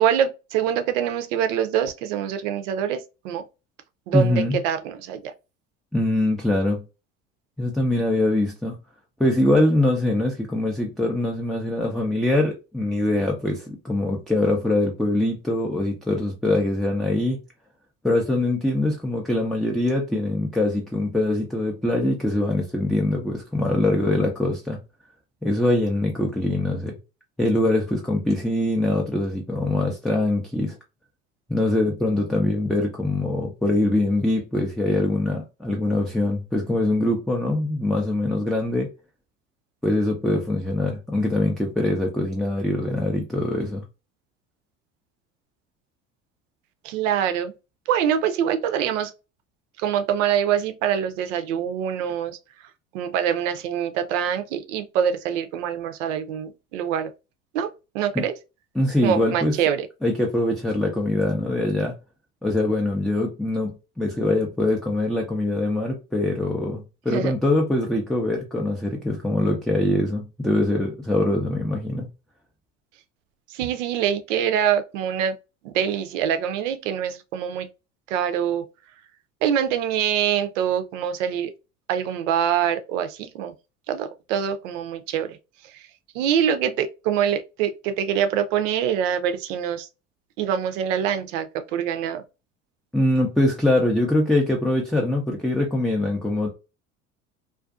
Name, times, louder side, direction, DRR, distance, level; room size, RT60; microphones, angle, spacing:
voice 1, 0.0-3.4 4.1-5.3 46.8-47.5 47.9-49.1 49.8-52.4 52.9-57.1 57.5-57.7 57.9-58.3 59.0-59.9 67.1-67.3 73.5-75.4 75.6-77.7 78.1-78.7 79.4-81.5 81.9-83.5 83.9-85.4 85.6-85.9 86.1-89.9 90.4-92.2, right 9 dB, 75° right, 0.5 m, -24 dB
voice 2, 4.1-4.6 5.9-6.8 7.6-8.8 9.2-17.4 18.0-24.8 25.4-26.9 27.4-30.8 31.5-38.9 39.8-43.8 58.1-58.2 58.8-59.5 60.0-62.0 62.4-72.1 92.9-96.5, left 1 dB, ahead, 0.3 m, -23 dB
2.4 x 2.2 x 2.3 m
hypercardioid pair, 75°, 38 cm